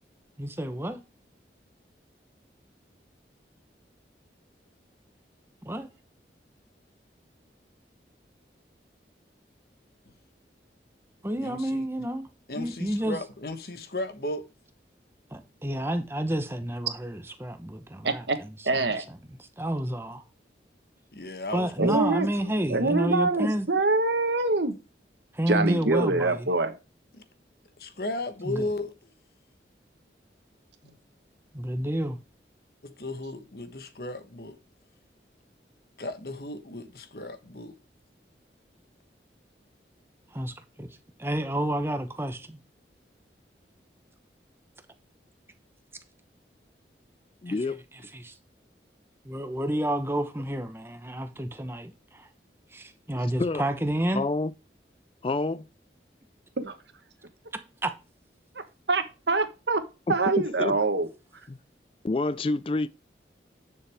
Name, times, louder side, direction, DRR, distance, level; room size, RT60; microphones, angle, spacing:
voice 1, 0.4-1.0 5.6-5.9 11.2-12.3 12.6-13.2 15.3-18.9 19.6-20.2 21.5-23.7 25.3-26.5 28.4-28.6 31.5-32.2 40.3-40.9 41.2-42.6 47.5-47.6 48.1-48.3 49.2-52.3 52.7-54.2 57.8-57.9, right 1 dB, 15° right, 0.9 m, -30 dB
voice 2, 11.4-11.9 12.5-14.5 21.1-23.0 27.1-27.2 27.8-28.9 30.8-31.0 32.8-34.6 36.0-37.7, left 2 dB, 55° left, 1.2 m, -36 dB
voice 3, 18.0-18.4 18.6-19.0 21.8-22.3 22.7-24.8 25.5-26.7 56.6-56.7 58.9-59.8 60.1-61.1, right 3 dB, 75° right, 1.4 m, -25 dB
voice 4, 47.4-47.8 53.4-53.7 54.1-54.5 55.2-55.6 60.1-60.8 61.5-61.6 62.0-62.9, left 3 dB, 30° left, 0.3 m, -28 dB
10.0 x 6.8 x 3.5 m
head